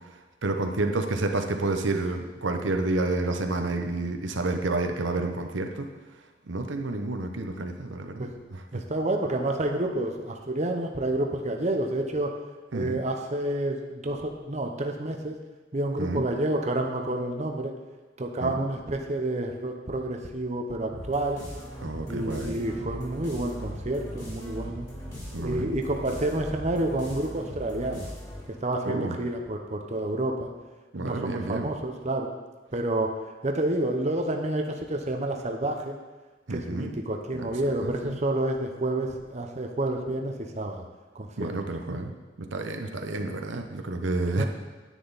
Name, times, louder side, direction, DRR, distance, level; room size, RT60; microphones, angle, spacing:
voice 1, 0.4-5.9 6.5-8.8 12.7-13.0 16.0-16.3 18.4-18.6 21.8-22.6 25.3-25.7 28.8-29.2 30.9-31.7 36.5-36.9 37.3-37.5 37.8-38.2 41.4-44.5, right 2 dB, 80° right, 5 dB, 0.9 m, -30 dB
voice 2, 8.7-12.3 12.7-15.4 15.7-17.7 18.2-21.4 22.1-24.9 25.4-28.1 28.6-30.5 31.0-32.3 32.7-33.1 33.4-35.9 36.5-40.8 41.1-41.5 44.4-44.5, right 1 dB, 35° right, 3 dB, 0.9 m, -29 dB
sound 1, 20.9-28.6, equal, 20° left, 3.2 m, -39 dB
10.0 x 9.2 x 4.1 m, 1.3 s
head